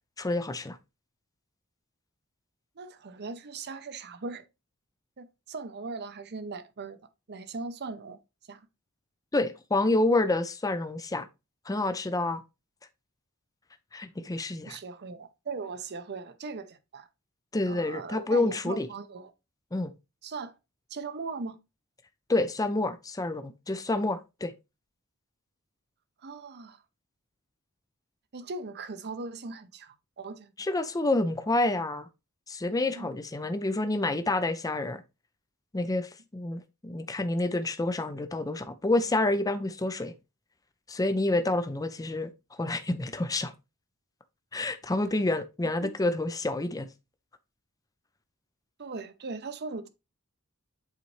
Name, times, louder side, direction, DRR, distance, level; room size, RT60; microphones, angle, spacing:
voice 1, 0.2-0.8 9.3-11.3 11.7-12.4 13.9-14.8 17.5-18.9 19.7-19.9 22.3-24.5 30.6-32.1 32.5-35.0 35.7-40.1 40.9-42.3 42.6-43.5 44.5-46.9, left 2 dB, 15° left, 0.5 m, -28 dB
voice 2, 2.8-4.5 5.2-7.0 7.3-8.2 8.5-8.6 14.6-17.1 17.7-19.3 20.2-20.6 20.9-21.6 26.2-26.8 28.3-30.7 32.9-33.1 45.8-45.9 48.8-49.9, right 4 dB, 50° right, 0.7 m, -39 dB
8.1 x 4.1 x 3.1 m
head